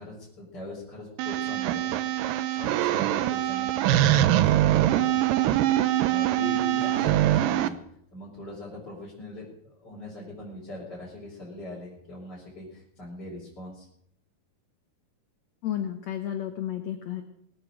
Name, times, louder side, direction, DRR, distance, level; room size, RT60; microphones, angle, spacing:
voice 1, 0.0-2.0 2.5-5.2 5.8-7.7 8.1-13.9, left 1 dB, 25° left, -7 dB, 5.1 m, -41 dB
sound 1, 1.2-7.7, right 13 dB, 75° right, 2.1 m, -23 dB
voice 2, 15.6-17.2, left 10 dB, 70° left, 6 dB, 1.7 m, -32 dB
22.0 x 9.0 x 6.5 m, 0.73 s
omnidirectional pair, 4.6 m